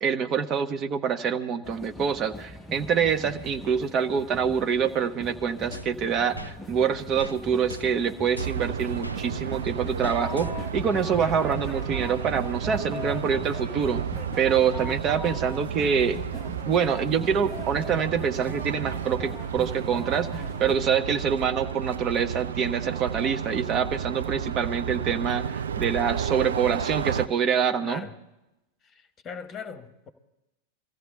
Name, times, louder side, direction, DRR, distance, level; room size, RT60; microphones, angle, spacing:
voice 1, 0.0-14.0 14.4-16.2 16.7-28.0, right 7 dB, 30° right, 1.0 m, -26 dB
sound 1, 1.6-20.8, left 1 dB, 5° left, 0.9 m, -40 dB
sound 2, 5.7-6.6 7.2-7.4 7.7-9.2 10.0-10.8, left 1 dB, 85° left, 0.5 m, -40 dB
sound 3, 8.4-27.3, right 8 dB, 65° right, 0.5 m, -32 dB
voice 2, 11.2-11.5 27.8-28.1 28.8-30.1, left 6 dB, 25° left, 1.4 m, -40 dB
23.5 x 14.5 x 3.7 m
figure-of-eight pair, 90°, 0 cm